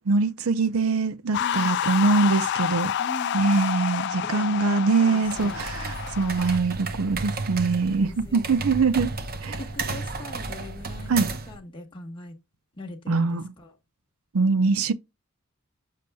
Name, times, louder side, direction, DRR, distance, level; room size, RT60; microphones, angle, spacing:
voice 1, 0.1-2.9 3.3-9.1 9.4-9.6 11.1-11.3 13.1-13.5 14.3-14.9, right 4 dB, 75° right, 0.6 m, -23 dB
sound 1, 1.3-6.6, left 9 dB, 55° left, 0.3 m, -29 dB
voice 2, 1.3-1.8 3.0-3.5 4.3-5.6 7.8-8.8 9.6-12.3 12.8-13.7, left 1 dB, 25° left, 1.1 m, -41 dB
sound 2, 5.2-11.6, right 3 dB, 45° right, 0.9 m, -33 dB
6.8 x 6.6 x 2.2 m
head